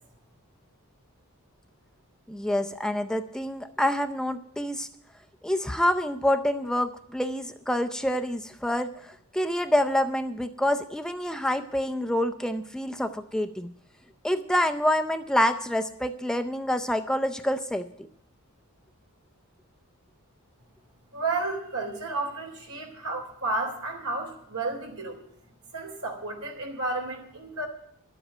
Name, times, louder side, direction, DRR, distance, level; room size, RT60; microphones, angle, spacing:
voice 1, 2.3-4.9 5.4-13.7 14.2-17.9, left 1 dB, 5° left, 7 dB, 0.5 m, -27 dB
voice 2, 21.1-25.2 25.7-27.7, right 2 dB, 80° right, 2 dB, 3.8 m, -32 dB
12.0 x 7.9 x 9.1 m, 0.67 s
head